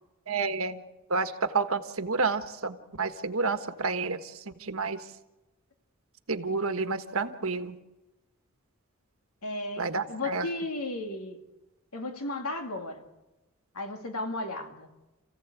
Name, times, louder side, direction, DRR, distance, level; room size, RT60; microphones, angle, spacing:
voice 1, 0.3-0.8 1.1-5.0 6.3-7.8 9.8-10.5, right 4 dB, 70° right, 9 dB, 1.4 m, -30 dB
voice 2, 9.4-9.8 10.1-11.4 11.9-13.0 13.7-14.9, left 2 dB, 80° left, 5 dB, 2.5 m, -34 dB
28.5 x 16.0 x 8.3 m, 1.0 s
head